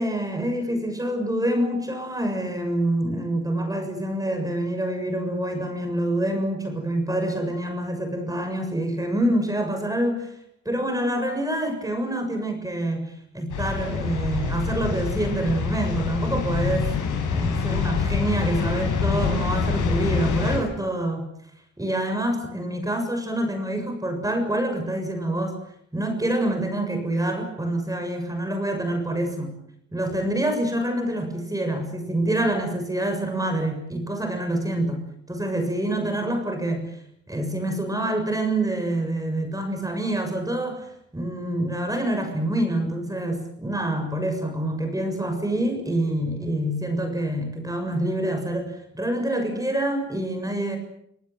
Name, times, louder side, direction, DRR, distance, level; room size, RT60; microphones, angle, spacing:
voice 1, 0.0-10.3 10.7-16.9 17.3-21.3 21.8-25.5 25.9-29.5 29.9-35.0 35.3-36.9 37.3-40.9 41.1-50.8, right 1 dB, 10° right, 5 dB, 6.9 m, -26 dB
sound 1, 13.5-20.6, left 5 dB, 75° left, 7.7 m, -25 dB
28.0 x 19.0 x 7.7 m, 0.72 s
cardioid pair, 100°, 31 cm